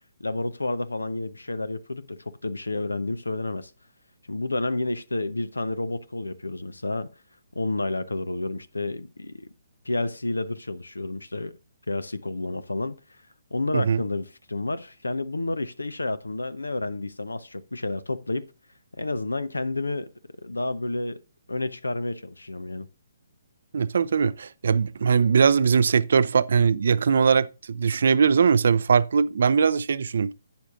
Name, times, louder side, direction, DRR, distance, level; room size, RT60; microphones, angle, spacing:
voice 1, 0.2-3.7 4.3-7.1 7.5-9.5 9.8-11.6 11.9-12.9 13.5-18.5 19.0-20.1 20.4-21.2 21.5-22.9, left 2 dB, 80° left, 0.6 m, -30 dB
voice 2, 23.7-30.3, right 6 dB, 60° right, 0.4 m, -21 dB
11.5 x 8.8 x 2.5 m
figure-of-eight pair, 135°, 0 cm